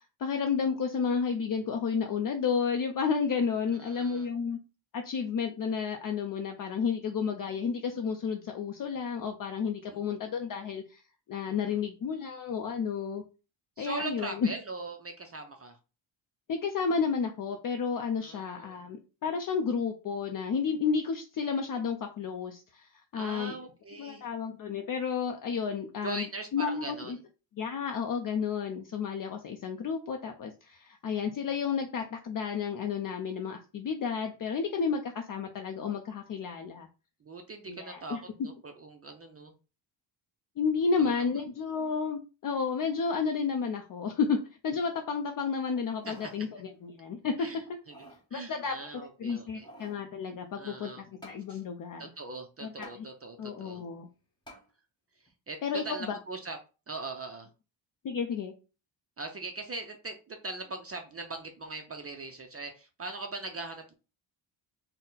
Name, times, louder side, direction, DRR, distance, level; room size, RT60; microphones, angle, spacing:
voice 1, 0.2-4.6 4.9-11.0 11.3-13.2 13.8-14.5 16.5-23.5 24.0-26.3 26.5-27.2 27.6-36.9 37.7-38.2 40.6-47.3 48.3-52.0 52.6-52.9 53.4-54.1 55.6-56.2 58.0-58.5, left 6 dB, 45° left, 4 dB, 0.5 m, -31 dB
voice 2, 3.7-4.3 9.8-10.1 11.5-11.8 13.8-15.8 18.2-18.8 23.2-24.3 26.0-27.2 37.2-39.5 41.0-41.3 46.0-46.5 47.4-49.7 50.5-51.0 51.5-51.6 52.0-53.8 55.1-56.6 56.9-57.5 59.2-63.9, right 3 dB, 30° right, 5 dB, 0.5 m, -41 dB
sound 1, 45.8-46.4 46.8-46.9 47.7-48.2 49.2-50.0 51.2-51.4 52.8-53.0 54.5-54.7 55.3-55.4, right 1 dB, 10° left, 1.2 m, -51 dB
4.0 x 2.1 x 3.8 m, 0.33 s
cardioid pair, 110°, 47 cm